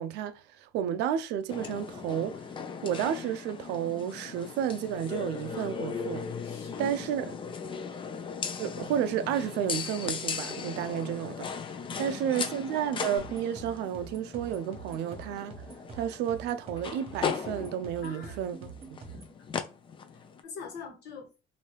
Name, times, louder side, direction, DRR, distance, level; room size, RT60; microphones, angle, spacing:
voice 1, 0.0-2.4 2.8-6.2 6.8-7.3 8.6-11.5 12.0-15.5 15.9-18.7 19.0-19.2, right 9 dB, 85° right, 0.4 m, -31 dB
sound 1, 1.5-20.4, left 6 dB, 30° left, 0.4 m, -38 dB
voice 2, 6.4-7.4 7.8-8.0 10.8-11.1 11.9-12.5 18.0-18.4 20.1-21.4, left 5 dB, 75° left, 1.3 m, -45 dB
sound 2, 13.2-19.4, right 5 dB, 35° right, 1.1 m, -46 dB
2.9 x 2.6 x 3.2 m
cardioid pair, 110°, 17 cm